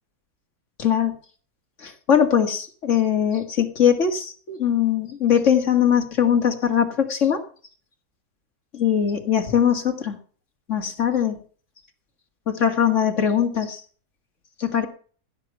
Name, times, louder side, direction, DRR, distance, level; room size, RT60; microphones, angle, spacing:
voice 1, 0.8-1.1 1.8-7.4 8.7-10.2 10.7-11.4 12.5-13.8 14.6-14.9, left 8 dB, 50° left, 5 dB, 2.3 m, -21 dB
15.5 x 7.4 x 5.8 m, 0.41 s
omnidirectional pair, 1.7 m